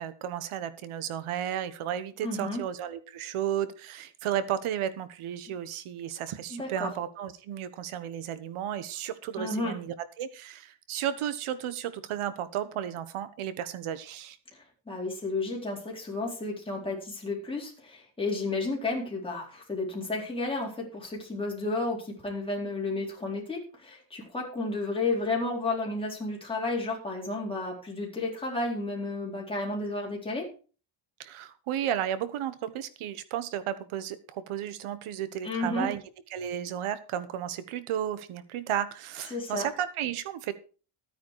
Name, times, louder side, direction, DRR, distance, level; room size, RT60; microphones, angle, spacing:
voice 1, 0.0-14.4 31.2-36.0 36.3-40.5, right 10 dB, 85° right, 14 dB, 1.4 m, -33 dB
voice 2, 2.2-2.6 6.5-6.9 9.4-9.7 14.9-30.5 35.4-35.9 39.3-39.7, left 2 dB, 10° left, -2 dB, 4.0 m, -32 dB
13.0 x 9.4 x 4.8 m, 0.37 s
cardioid pair, 170°, 49 cm